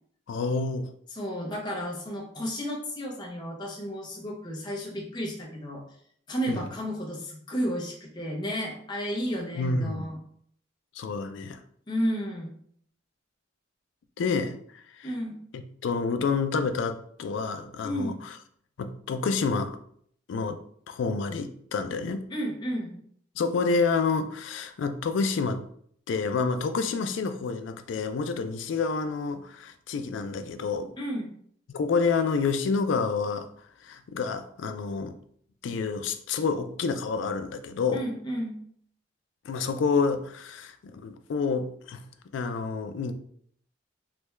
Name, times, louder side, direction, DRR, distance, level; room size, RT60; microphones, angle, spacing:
voice 1, 0.3-0.9 6.5-6.7 9.6-10.1 10.9-11.6 14.2-14.6 14.9-15.1 15.5-18.3 18.8-19.8 20.3-20.6 20.9-22.3 23.4-25.6 26.1-30.9 31.7-33.5 33.8-35.2 35.6-38.0 39.4-42.0 42.3-43.1, left 4 dB, 70° left, 0.3 m, -28 dB
voice 2, 1.1-5.8 6.3-10.2 11.9-12.5 15.0-15.4 17.8-18.2 22.3-23.0 31.0-31.3 37.9-38.6, equal, 20° left, 0.6 m, -32 dB
3.3 x 2.2 x 3.0 m
head